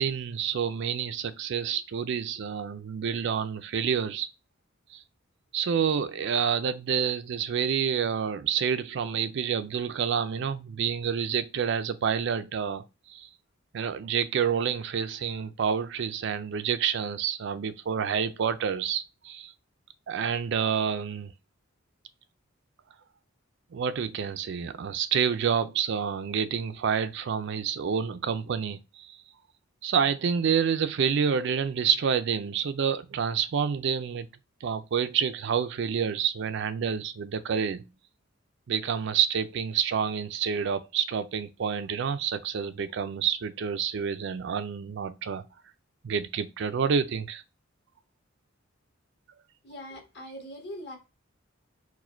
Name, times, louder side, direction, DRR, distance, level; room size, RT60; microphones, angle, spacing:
voice 1, 0.0-4.3 4.9-5.0 5.5-12.8 13.1-13.3 13.7-19.5 20.1-21.3 23.7-29.2 29.8-34.3 34.6-37.8 38.7-45.5 46.0-47.4, right 7 dB, 60° right, 0.4 m, -28 dB
voice 2, 49.6-51.0, equal, 55° left, 1.4 m, -41 dB
4.7 x 2.2 x 4.3 m
head